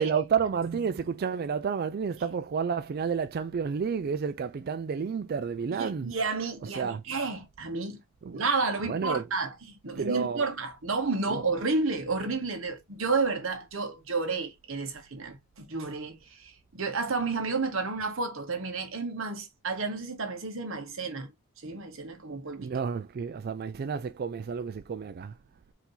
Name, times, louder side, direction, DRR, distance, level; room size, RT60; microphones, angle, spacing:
voice 1, 0.0-6.1 6.7-7.0 8.2-8.4 8.9-9.3 10.0-10.5 11.3-11.4 22.6-25.4, right 6 dB, 45° right, 0.3 m, -30 dB
voice 2, 5.7-8.0 8.3-21.3 21.6-22.7, right 4 dB, 60° right, 1.1 m, -31 dB
4.6 x 2.7 x 3.8 m
head